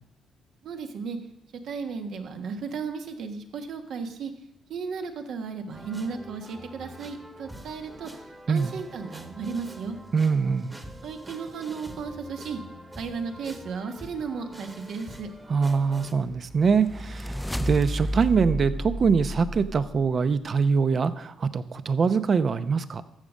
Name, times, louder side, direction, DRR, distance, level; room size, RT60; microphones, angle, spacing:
voice 1, 0.6-1.2 1.6-4.3 4.7-8.1 8.5-10.0 11.0-12.6 13.0-15.3, right 5 dB, 70° right, 5 dB, 1.4 m, -34 dB
sound 1, 5.7-16.1, right 1 dB, 15° right, 1.3 m, -45 dB
voice 2, 10.1-10.7 15.5-23.0, right 5 dB, 45° right, 12 dB, 0.7 m, -23 dB
sound 2, 16.0-20.3, equal, 5° left, 0.5 m, -32 dB
13.5 x 5.2 x 7.4 m, 0.82 s
cardioid pair, 90°, 0 cm